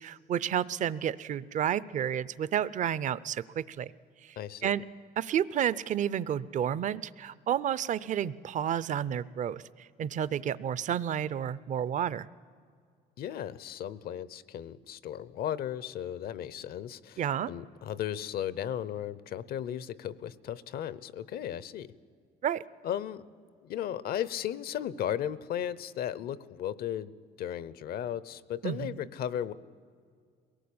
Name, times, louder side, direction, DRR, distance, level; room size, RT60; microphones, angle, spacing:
voice 1, 0.0-3.9 4.2-4.4 4.6-4.8 5.2-12.3 17.2-17.5 22.4-22.6 28.6-28.9, right 9 dB, 45° right, 18 dB, 0.6 m, -31 dB
voice 2, 4.4-4.7 13.2-21.9 22.8-23.2 23.6-29.5, left 10 dB, 65° left, 19 dB, 0.8 m, -35 dB
22.5 x 18.0 x 8.7 m, 2.1 s
cardioid pair, 110°, 17 cm